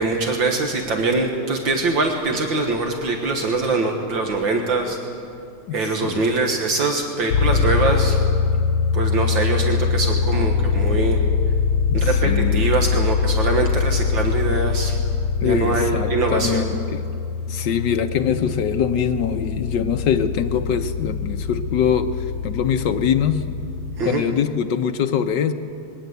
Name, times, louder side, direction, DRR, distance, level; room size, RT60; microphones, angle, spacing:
voice 1, 0.0-5.0 5.7-8.2 8.9-11.2 11.9-15.0 15.4-16.6 24.0-24.2, right 3 dB, 70° right, 2 dB, 2.1 m, -23 dB
voice 2, 5.7-6.2 11.9-12.7 15.4-17.1 17.5-23.5 24.0-25.5, left 8 dB, 65° left, 8 dB, 1.3 m, -23 dB
sound 1, 7.3-24.0, left 5 dB, 85° left, 1.7 m, -23 dB
21.5 x 18.0 x 8.0 m, 2.7 s
omnidirectional pair, 2.2 m